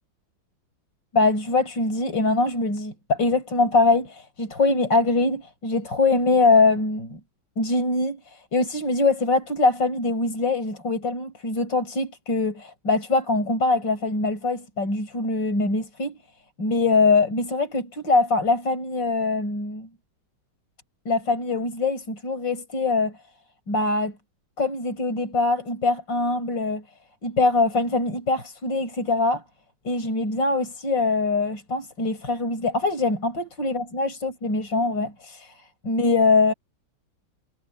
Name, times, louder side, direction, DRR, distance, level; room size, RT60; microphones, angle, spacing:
voice 1, 1.1-7.2 7.6-16.2 16.6-19.9 21.0-23.2 23.7-24.2 24.6-26.8 27.2-29.4 29.8-36.5, left 3 dB, 65° left, 6.5 m, -23 dB
omnidirectional pair, 2.1 m